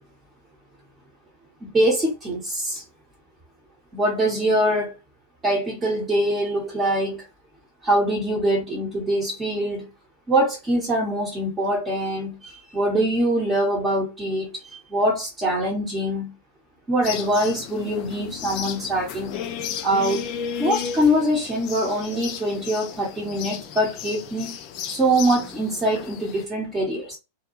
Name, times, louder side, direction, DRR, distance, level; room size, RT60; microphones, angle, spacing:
voice 1, 1.6-2.8 3.9-4.9 5.4-7.3 7.8-9.8 10.3-16.3 16.9-19.4 19.8-20.2 20.6-24.6 24.9-27.2, right 1 dB, 20° right, 0.9 m, -23 dB
sound 1, 17.0-26.4, left 8 dB, 40° left, 0.4 m, -34 dB
2.6 x 2.2 x 2.8 m
figure-of-eight pair, 90°, 0 cm